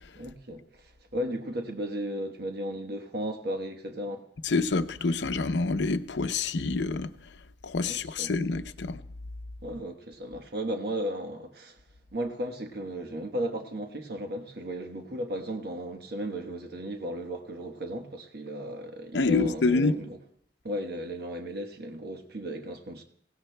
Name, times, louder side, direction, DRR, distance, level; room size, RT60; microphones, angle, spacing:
voice 1, 0.2-4.2 7.9-8.3 9.6-11.8 12.1-20.2 20.6-23.0, equal, 60° right, 1.2 m, -35 dB
voice 2, 4.4-7.1 7.6-9.0 19.1-20.0, left 3 dB, 80° left, 0.6 m, -27 dB
25.0 x 17.0 x 2.2 m
head